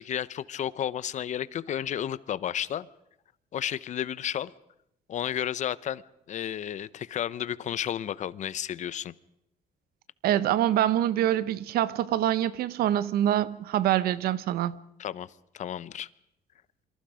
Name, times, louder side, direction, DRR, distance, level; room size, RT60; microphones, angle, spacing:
voice 1, 0.0-2.9 3.5-4.5 5.1-6.0 6.3-9.1 15.0-16.1, left 10 dB, 50° left, 0.8 m, -32 dB
voice 2, 10.2-14.8, right 12 dB, 75° right, 1.0 m, -25 dB
27.0 x 25.0 x 5.1 m
cardioid pair, 130°, 16 cm